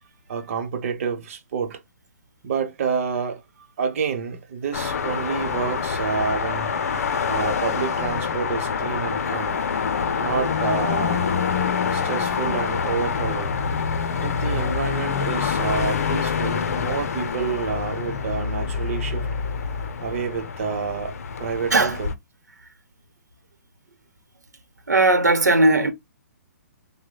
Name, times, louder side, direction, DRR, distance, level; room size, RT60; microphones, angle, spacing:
voice 1, 0.3-1.8 2.4-3.4 3.8-6.7 7.3-9.6 10.2-11.3 11.9-13.5 14.2-19.3 20.0-21.1 21.4-22.1, right 6 dB, 50° right, 0.9 m, -28 dB
sound 1, 4.7-22.1, left 6 dB, 60° left, 0.6 m, -26 dB
voice 2, 24.9-25.9, right 2 dB, 90° right, 0.9 m, -17 dB
6.0 x 2.1 x 2.2 m
figure-of-eight pair, 135°, 9 cm